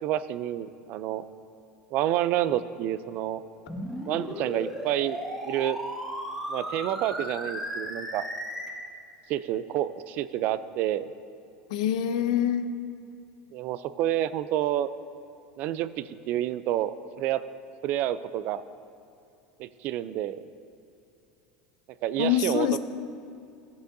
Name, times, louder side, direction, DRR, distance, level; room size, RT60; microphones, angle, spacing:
voice 1, 0.0-1.2 1.9-3.4 4.1-5.2 5.5-5.8 6.5-8.3 9.3-11.0 13.5-14.9 15.6-17.4 17.8-18.6 19.6-20.4 22.0-22.8, right 12 dB, 50° right, 14 dB, 0.3 m, -29 dB
sound 1, 3.7-8.7, equal, 5° right, 1.2 m, -35 dB
voice 2, 11.7-12.7 22.2-22.8, left 10 dB, 80° left, 10 dB, 0.5 m, -25 dB
14.0 x 7.0 x 2.6 m, 2.7 s
supercardioid pair, 130°, 4 cm